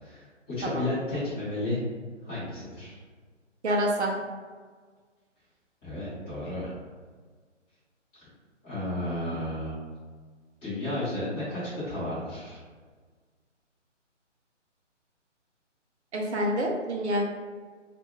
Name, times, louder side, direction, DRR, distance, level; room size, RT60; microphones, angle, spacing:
voice 1, 0.0-1.8 2.2-3.0 5.8-6.7 8.6-9.8 10.6-12.6, left 1 dB, 15° left, -13 dB, 0.9 m, -33 dB
voice 2, 3.6-4.1 16.1-17.2, equal, 65° right, 0 dB, 0.7 m, -27 dB
2.5 x 2.2 x 3.1 m, 1.5 s
figure-of-eight pair, 145°, 37 cm